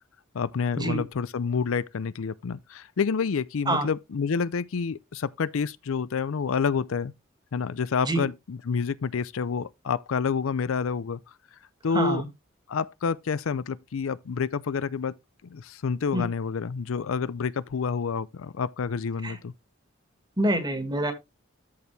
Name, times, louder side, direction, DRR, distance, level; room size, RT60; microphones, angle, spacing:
voice 1, 0.3-7.1 7.5-11.2 11.8-12.2 12.7-15.1 15.5-19.5, left 5 dB, 75° left, 0.5 m, -28 dB
voice 2, 11.9-12.3 16.1-16.2 19.2-19.4 20.4-21.1, right 1 dB, 20° right, 1.9 m, -26 dB
13.5 x 4.6 x 3.3 m
head